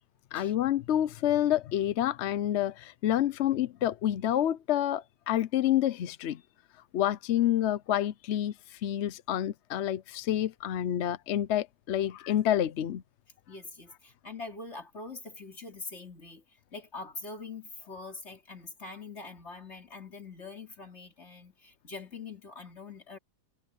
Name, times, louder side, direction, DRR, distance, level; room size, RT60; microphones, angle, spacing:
voice 1, 0.3-6.4 6.9-13.0, left 11 dB, 60° left, 0.7 m, -28 dB
voice 2, 13.5-16.4 16.7-23.2, left 3 dB, 40° left, 3.4 m, -44 dB
omnidirectional pair, 1.7 m